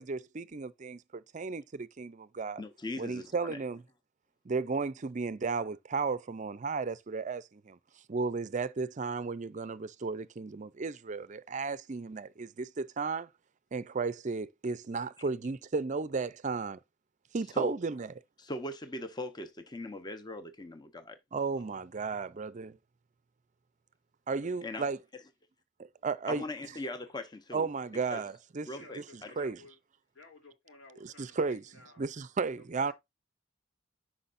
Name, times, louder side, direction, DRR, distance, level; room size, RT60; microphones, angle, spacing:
voice 1, 0.0-2.6 3.0-3.8 4.5-7.8 8.1-13.3 13.7-16.8 17.3-18.1 21.3-22.8 24.3-25.0 25.8-26.4 27.5-28.7 29.0-29.1 29.4-29.6 31.0-31.6 32.0-32.9, right 4 dB, 40° right, 0.5 m, -34 dB
voice 2, 2.6-3.6 17.5-17.8 18.4-21.2 24.6-24.9 26.3-27.7 28.1-28.3 28.7-29.3, left 1 dB, 20° left, 0.8 m, -40 dB
voice 3, 28.6-29.8 30.1-32.0 32.8-32.9, left 2 dB, 85° left, 3.1 m, -55 dB
9.8 x 6.0 x 2.5 m
head